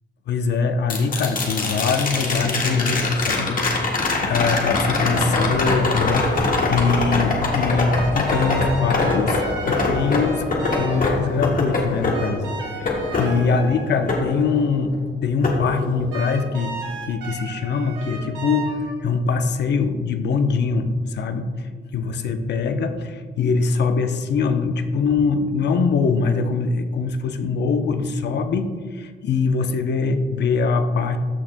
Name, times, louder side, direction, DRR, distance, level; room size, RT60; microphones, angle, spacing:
voice 1, 0.3-15.0 15.2-16.7 17.0-31.2, left 4 dB, 60° left, 8 dB, 0.7 m, -23 dB
sound 1, 0.9-15.0 15.4-16.5 18.7-18.8, left 3 dB, 45° left, 1.6 m, -24 dB
sound 2, 7.9-11.4 12.1-14.3 16.1-19.1, right 3 dB, 90° right, 2.2 m, -35 dB
13.0 x 6.0 x 2.2 m, 1.5 s
cardioid pair, 90°, 20 cm